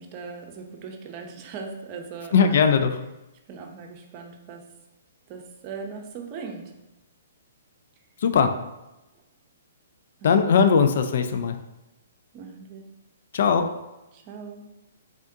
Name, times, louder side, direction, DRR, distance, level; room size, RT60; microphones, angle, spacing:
voice 1, 0.0-2.7 3.5-4.6 5.3-6.7 10.2-10.4 12.3-12.9 14.1-14.7, right 5 dB, 35° right, 3 dB, 0.6 m, -39 dB
voice 2, 2.3-3.0 8.2-8.6 10.2-11.6 13.3-13.7, left 6 dB, 60° left, 7 dB, 0.4 m, -19 dB
3.6 x 3.5 x 2.7 m, 0.95 s
hypercardioid pair, 130°, 0 cm